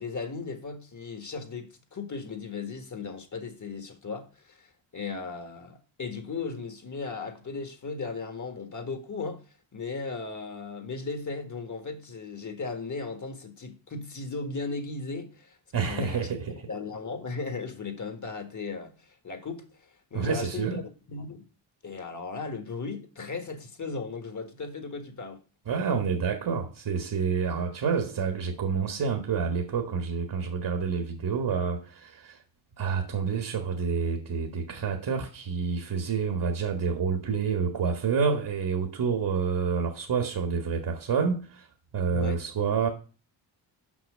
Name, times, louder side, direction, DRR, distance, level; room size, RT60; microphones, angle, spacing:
voice 1, 0.0-4.7 4.9-9.4 9.7-16.3 16.7-18.9 19.2-19.7 20.1-20.8 21.1-21.4 21.8-25.4 42.1-42.4, left 4 dB, 40° left, 1.7 m, -36 dB
voice 2, 15.7-16.7 20.1-20.8 25.7-32.4 32.8-41.7 41.9-42.9, right 6 dB, 60° right, 1.5 m, -28 dB
6.1 x 5.7 x 6.3 m
cardioid pair, 80°, 47 cm